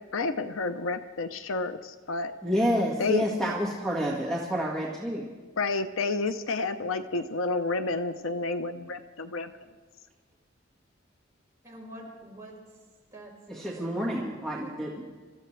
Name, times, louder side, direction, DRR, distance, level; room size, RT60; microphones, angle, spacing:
voice 1, 0.1-2.3 3.0-3.2 5.6-9.5, left 3 dB, 75° left, 9 dB, 0.7 m, -30 dB
voice 2, 2.4-5.3 13.5-15.0, equal, ahead, -3 dB, 1.8 m, -28 dB
voice 3, 11.6-12.8 13.1-14.2 14.6-14.9, right 1 dB, 15° right, -5 dB, 5.3 m, -47 dB
27.0 x 14.5 x 3.3 m, 1.5 s
head